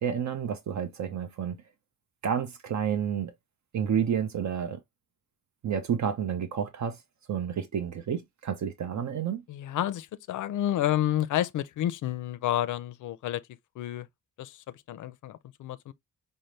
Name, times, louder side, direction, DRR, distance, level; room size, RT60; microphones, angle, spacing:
voice 1, 0.0-1.6 2.2-3.3 3.7-4.8 5.6-7.0 7.3-9.4, right 8 dB, 60° right, 0.7 m, -30 dB
voice 2, 9.5-13.4 13.8-14.1 14.4-15.9, left 12 dB, 70° left, 0.5 m, -30 dB
5.4 x 2.1 x 3.2 m
wide cardioid pair, 150°, 32 cm